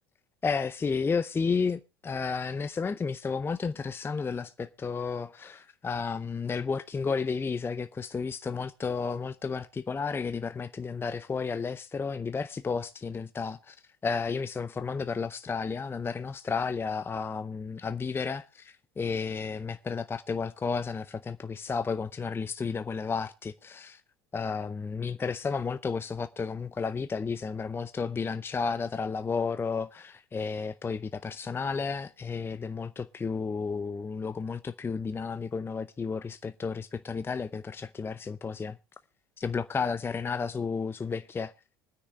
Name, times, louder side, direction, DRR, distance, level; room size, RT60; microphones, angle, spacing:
voice 1, 0.4-13.8 14.0-24.0 24.3-38.8 39.4-41.5, left 5 dB, 20° left, 0.6 m, -32 dB
24.5 x 9.7 x 2.3 m
figure-of-eight pair, 70°, 12 cm